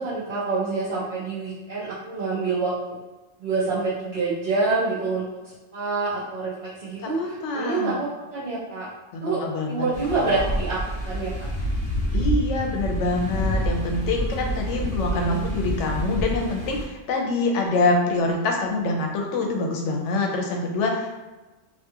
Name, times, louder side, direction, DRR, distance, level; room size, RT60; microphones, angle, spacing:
voice 1, 0.0-2.9 3.4-5.3 5.7-8.9 9.2-10.8 11.0-11.5 14.4-14.7 15.0-15.4, right 3 dB, 45° right, -11 dB, 0.9 m, -27 dB
voice 2, 7.0-8.1 9.1-9.8 10.1-10.5 12.1-21.1, left 2 dB, 90° left, 1 dB, 0.9 m, -25 dB
sound 1, 9.9-16.9, equal, 45° left, 1.0 m, -28 dB
2.7 x 2.3 x 2.8 m, 1.1 s
omnidirectional pair, 1.2 m